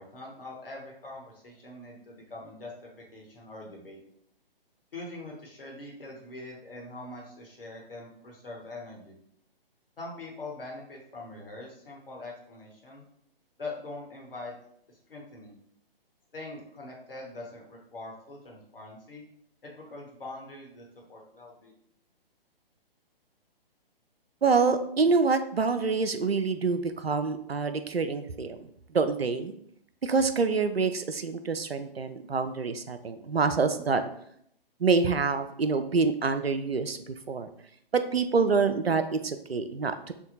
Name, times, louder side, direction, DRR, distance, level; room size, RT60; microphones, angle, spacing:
voice 1, 0.0-4.0 4.9-9.2 10.0-13.0 13.6-14.5 14.9-15.5 16.3-19.2 19.6-21.7, left 2 dB, 65° left, -2 dB, 1.2 m, -43 dB
voice 2, 24.4-28.6 28.9-29.5 30.0-34.0 34.8-37.5 37.9-40.1, right 4 dB, 90° right, 9 dB, 0.5 m, -26 dB
3.5 x 2.2 x 4.1 m, 0.70 s
figure-of-eight pair, 130°, 30 cm